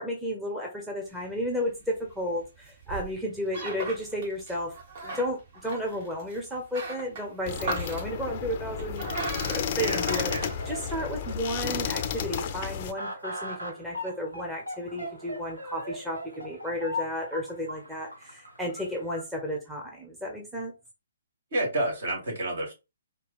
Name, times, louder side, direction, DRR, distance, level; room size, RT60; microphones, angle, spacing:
voice 1, 0.0-4.8 5.0-9.1 9.5-20.7, equal, 5° right, 0.8 m, -33 dB
sound 1, 1.1-11.3, right 3 dB, 45° right, 1.6 m, -39 dB
sound 2, 7.4-12.9, left 7 dB, 35° left, 0.5 m, -32 dB
voice 2, 9.8-10.5 21.5-22.7, right 1 dB, 60° right, 2.3 m, -30 dB
sound 3, 10.1-19.2, left 1 dB, 90° right, 1.3 m, -40 dB
4.3 x 2.3 x 3.4 m
figure-of-eight pair, 130°, 0 cm